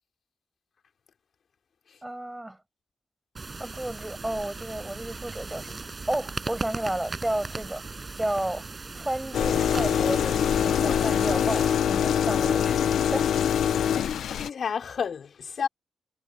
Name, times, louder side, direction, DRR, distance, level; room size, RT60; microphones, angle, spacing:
voice 1, 2.0-2.6 3.6-5.8 6.1-7.8 8.2-8.6 8.9-12.8 13.1-13.5, right 1 dB, 10° right, 7.3 m, -32 dB
sound 1, 3.4-11.7, right 3 dB, 25° right, 6.3 m, -38 dB
sound 2, 9.3-14.5, left 9 dB, 75° left, 0.8 m, -24 dB
voice 2, 14.3-15.7, left 6 dB, 50° left, 5.2 m, -31 dB
wide cardioid pair, 160°, 0 cm